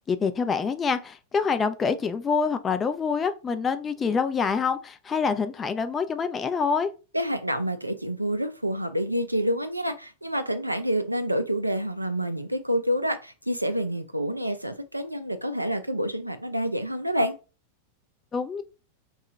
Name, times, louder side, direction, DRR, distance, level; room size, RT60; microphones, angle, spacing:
voice 1, 0.1-6.9 18.3-18.6, left 5 dB, 20° left, 0.4 m, -26 dB
voice 2, 7.1-17.4, equal, 85° right, 0.4 m, -28 dB
2.8 x 2.3 x 3.8 m
figure-of-eight pair, 90°, 0 cm